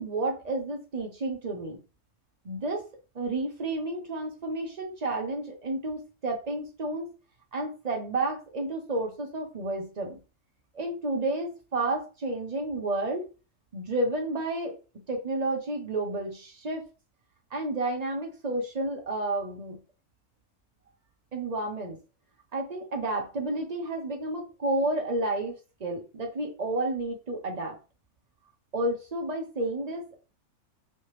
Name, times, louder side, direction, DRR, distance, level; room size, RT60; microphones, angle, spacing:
voice 1, 0.0-1.8 2.4-2.8 3.1-7.1 7.5-10.2 10.7-13.3 13.7-14.8 15.1-16.8 17.5-19.8 21.3-22.0 22.5-25.5 25.8-27.8 28.7-30.2, right 2 dB, 35° right, 2 dB, 0.7 m, -31 dB
3.3 x 2.9 x 3.2 m, 0.32 s
omnidirectional pair, 1.6 m